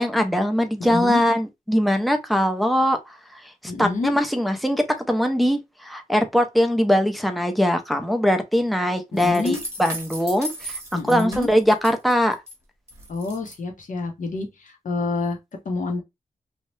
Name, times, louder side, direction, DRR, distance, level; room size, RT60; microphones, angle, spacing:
voice 1, 0.0-3.0 3.8-10.8 11.1-12.4, equal, ahead, 0.5 m, -21 dB
voice 2, 0.8-1.2 3.7-4.1 9.1-9.6 10.9-11.5 13.1-15.4 15.6-16.0, left 3 dB, 60° left, 0.7 m, -28 dB
sound 1, 9.2-12.5 12.9-13.6, right 1 dB, 20° right, 0.9 m, -36 dB
2.7 x 2.1 x 3.1 m
wide cardioid pair, 120°, 15 cm